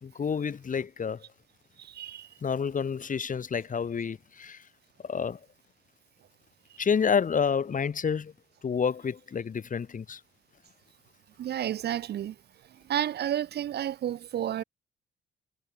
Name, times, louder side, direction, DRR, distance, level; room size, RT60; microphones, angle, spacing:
voice 1, 0.0-1.2 2.4-4.6 5.0-5.4 6.8-8.3 8.6-10.2, left 6 dB, 40° left, 2.2 m, -29 dB
voice 2, 1.8-2.3 6.7-6.8 11.4-12.4 12.7-14.6, right 11 dB, 55° right, 0.6 m, -31 dB
cardioid pair, 90°, 20 cm